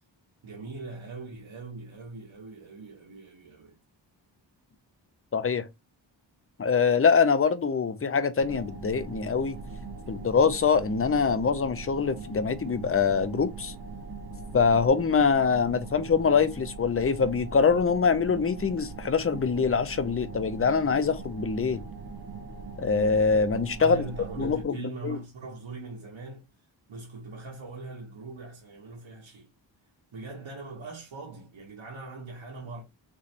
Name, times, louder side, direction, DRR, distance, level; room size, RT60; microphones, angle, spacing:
voice 1, 0.4-3.8 23.8-26.5 26.9-29.5 30.1-32.8, right 3 dB, 90° right, 1.4 m, -41 dB
voice 2, 5.3-5.7 6.6-9.6 10.1-13.7 14.5-21.8 22.8-24.0 24.4-25.2, left 5 dB, 30° left, 0.7 m, -24 dB
sound 1, 8.4-24.6, right 4 dB, 55° right, 0.9 m, -41 dB
4.5 x 3.2 x 2.9 m
wide cardioid pair, 75°, 45 cm